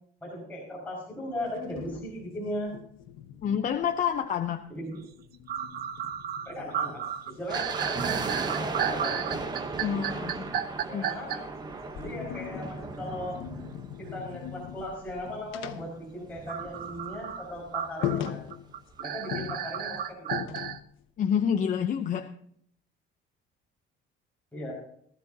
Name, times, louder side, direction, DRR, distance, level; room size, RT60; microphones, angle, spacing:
voice 1, 0.2-2.8 4.7-5.1 6.5-7.0 7.3-9.4 10.9-11.4 11.9-13.4 14.0-18.4 19.0-20.5 24.5-24.7, left 1 dB, 10° left, -6 dB, 5.4 m, -37 dB
sound 1, 1.4-4.5 4.8-7.8 9.1-11.1 11.6-16.9 17.1-17.3 17.7-17.8 18.0-18.9 19.3-21.0, left 11 dB, 75° left, 1.2 m, -40 dB
voice 2, 3.4-4.6 9.8-10.6 10.9-11.1 21.2-22.3, left 8 dB, 40° left, 6 dB, 0.7 m, -28 dB
sound 2, 5.1-5.2 5.5-11.4 16.5-20.8, right 9 dB, 50° right, 0.8 m, -33 dB
sound 3, 7.5-14.8 15.0-15.1 15.8-17.6 17.9-18.0 18.2-18.5 18.9-19.0, right 3 dB, 20° right, 1.0 m, -37 dB
19.0 x 14.0 x 2.8 m, 0.65 s
cardioid pair, 170°, 21 cm